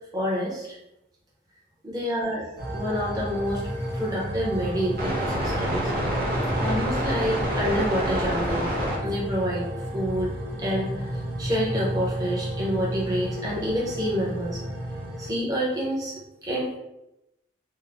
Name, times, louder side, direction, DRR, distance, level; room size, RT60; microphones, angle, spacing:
voice 1, 0.1-0.8 1.8-2.5 2.7-6.2 6.6-8.7 9.0-10.3 10.6-14.6 15.2-16.8, equal, 20° right, -6 dB, 0.8 m, -28 dB
sound 1, 2.6-15.3, equal, 50° right, 0.7 m, -29 dB
3.2 x 2.1 x 3.5 m, 0.91 s
head